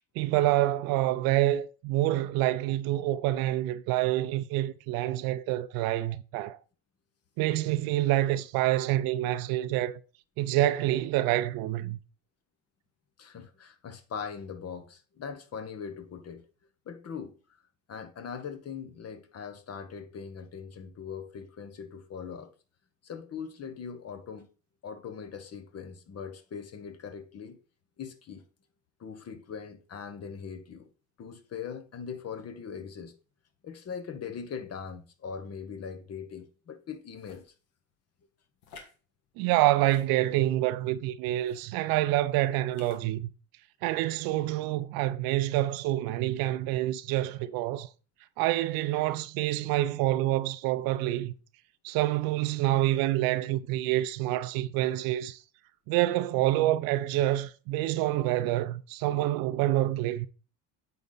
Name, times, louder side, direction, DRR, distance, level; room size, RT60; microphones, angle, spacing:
voice 1, 0.2-6.6 7.4-10.0 10.4-12.0 39.4-43.3 43.8-47.9 48.4-51.3 51.8-55.4 55.9-60.3, right 15 dB, 65° right, 0.6 m, -27 dB
voice 2, 13.2-16.5 16.9-17.3 17.9-22.5 23.0-24.5 24.8-27.6 28.0-28.4 29.0-30.9 31.2-33.1 33.6-37.4, left 6 dB, 40° left, 1.2 m, -41 dB
sound 1, 37.2-37.5 38.6-39.0 39.8-40.6 41.4-41.7 42.7-43.1, left 4 dB, 70° left, 1.6 m, -51 dB
8.3 x 4.4 x 3.9 m
hypercardioid pair, 80°, 38 cm